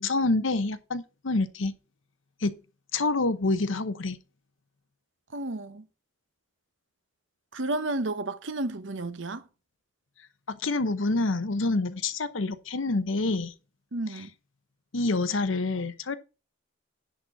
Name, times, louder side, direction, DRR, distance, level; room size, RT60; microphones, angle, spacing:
voice 1, 0.0-1.7 2.4-2.6 2.9-4.2 10.5-13.5 14.9-16.2, left 3 dB, 70° left, 0.9 m, -27 dB
voice 2, 5.3-5.9 7.5-9.5 13.9-14.3, right 2 dB, 60° right, 0.9 m, -32 dB
10.5 x 4.3 x 5.9 m
head